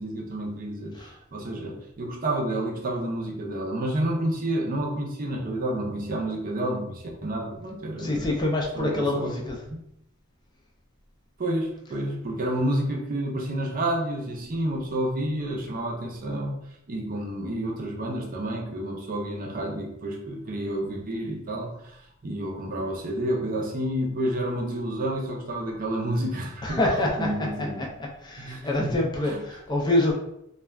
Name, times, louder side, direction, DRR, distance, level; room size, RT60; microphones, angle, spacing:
voice 1, 0.0-8.2 8.8-9.5 9.7-9.8 11.4-16.6 16.9-26.8 27.2-27.9 28.4-28.9 29.2-29.4, right 1 dB, 45° right, 0 dB, 0.5 m, -30 dB
voice 2, 8.0-9.7 26.6-27.3 27.6-27.9 28.2-30.1, left 1 dB, 20° left, -1 dB, 0.4 m, -26 dB
2.3 x 2.2 x 3.2 m, 0.79 s
head